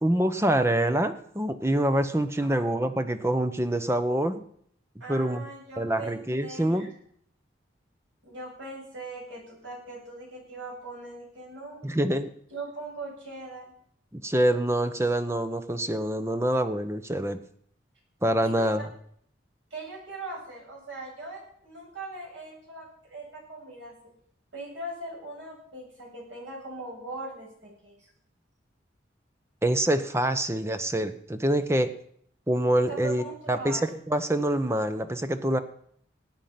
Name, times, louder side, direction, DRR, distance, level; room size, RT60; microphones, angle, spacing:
voice 1, 0.0-4.4 5.1-5.4 5.8-6.9 11.8-12.3 14.1-17.4 18.2-18.9 29.6-31.9 32.5-35.6, right 1 dB, 15° right, 10 dB, 0.8 m, -26 dB
voice 2, 5.0-6.9 8.2-11.8 12.5-13.7 18.4-18.7 19.7-23.9 24.5-28.0 32.9-33.8, right 2 dB, 80° right, -2 dB, 7.8 m, -40 dB
18.5 x 9.1 x 5.9 m, 0.66 s
head